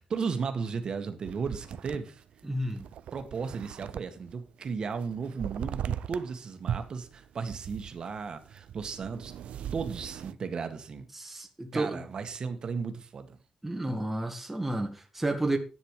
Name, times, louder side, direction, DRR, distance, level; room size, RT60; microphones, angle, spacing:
voice 1, 0.0-2.2 3.1-9.3 9.7-11.1 11.7-13.4, right 5 dB, 40° right, 1.8 m, -35 dB
sound 1, 1.3-4.4 4.7-6.3 6.7-10.3, right 10 dB, 85° right, 0.6 m, -39 dB
voice 2, 2.5-2.9 11.1-12.0 13.6-15.6, right 2 dB, 10° right, 1.7 m, -31 dB
10.5 x 9.3 x 4.9 m
wide cardioid pair, 170°, 2 cm